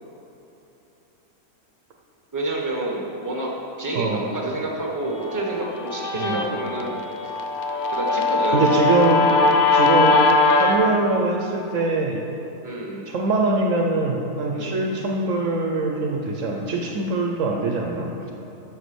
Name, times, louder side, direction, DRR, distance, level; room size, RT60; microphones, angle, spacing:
voice 1, 2.3-3.5 3.8-7.1 7.9-9.0 9.2-9.7 10.7-10.9 12.6-13.1 14.5-14.7, right 2 dB, 15° right, -2 dB, 1.1 m, -29 dB
voice 2, 4.0-4.3 6.2-6.4 8.5-9.3 9.7-10.2 10.6-12.3 13.1-18.3, right 2 dB, 65° right, 0 dB, 1.1 m, -23 dB
Guitar, 5.2-10.8, left 3 dB, 55° left, 0.5 m, -20 dB
8.1 x 6.4 x 6.1 m, 3.0 s
omnidirectional pair, 1.5 m